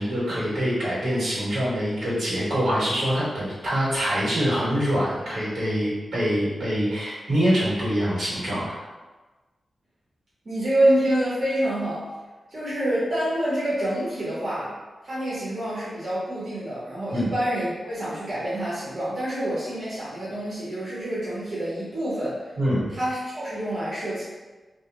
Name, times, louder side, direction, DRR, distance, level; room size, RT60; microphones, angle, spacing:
voice 1, 0.0-8.8 17.1-17.3 22.6-22.9, equal, 85° right, -8 dB, 1.2 m, -25 dB
voice 2, 10.4-12.1 12.5-14.7 15.0-22.4 22.9-24.2, right 1 dB, 55° right, -10 dB, 0.8 m, -27 dB
2.2 x 2.1 x 2.8 m, 1.2 s
cardioid pair, 80°, 0 cm